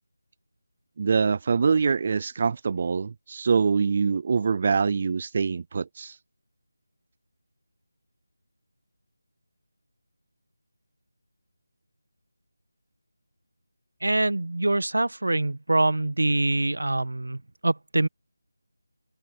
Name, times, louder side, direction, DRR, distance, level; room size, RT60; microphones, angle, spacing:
voice 1, 1.0-6.2, right 5 dB, 35° right, 0.4 m, -24 dB
voice 2, 14.0-18.1, right 2 dB, 85° right, 1.3 m, -24 dB
figure-of-eight pair, 170°, 0 cm